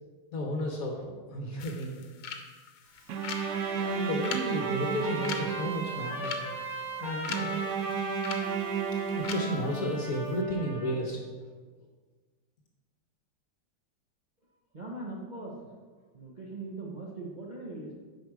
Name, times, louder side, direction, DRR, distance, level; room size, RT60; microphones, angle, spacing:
voice 1, 0.3-2.0 3.7-6.4 7.0-7.6 9.0-11.2, equal, 50° left, 1 dB, 1.2 m, -33 dB
sound 1, 1.6-9.3, left 7 dB, 75° left, 1.5 m, -43 dB
Trumpet, 3.1-11.0, equal, ahead, 1.1 m, -38 dB
Bowed string instrument, 3.1-6.3 7.3-10.2, right 8 dB, 80° right, 0.9 m, -33 dB
voice 2, 14.7-15.5 16.1-17.9, right 2 dB, 35° right, -4 dB, 0.7 m, -40 dB
9.2 x 5.2 x 4.8 m, 1.4 s
omnidirectional pair, 2.2 m